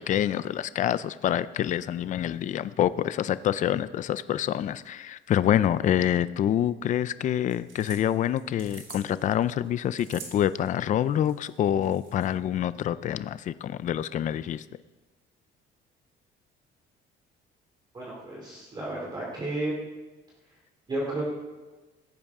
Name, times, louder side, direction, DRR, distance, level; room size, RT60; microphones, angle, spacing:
voice 1, 0.0-14.6, left 10 dB, 40° left, 15 dB, 0.4 m, -26 dB
sound 1, 7.3-12.3, right 5 dB, 65° right, 3.4 m, -48 dB
voice 2, 17.9-19.7 20.9-21.2, right 2 dB, 20° right, -5 dB, 2.7 m, -32 dB
16.5 x 14.0 x 3.6 m, 1.2 s
cardioid pair, 170°, 20 cm